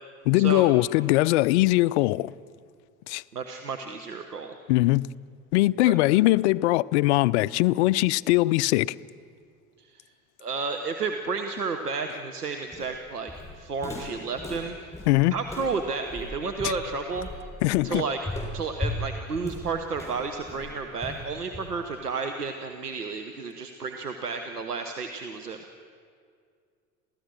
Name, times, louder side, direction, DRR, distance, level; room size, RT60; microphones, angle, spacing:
voice 1, 0.3-2.3 3.1-3.2 4.7-5.1 5.5-8.9 15.1-15.3 17.6-18.0, left 19 dB, 50° left, 0.5 m, -21 dB
voice 2, 3.3-4.5 5.8-6.0 9.8-10.0 10.4-14.9 15.3-17.5 17.8-18.2 18.5-25.6, right 4 dB, 85° right, 1.0 m, -32 dB
Walk footsteps, 12.7-22.0, left 1 dB, 5° left, 7.6 m, -37 dB
27.5 x 16.0 x 6.3 m
figure-of-eight pair, 70°, 45 cm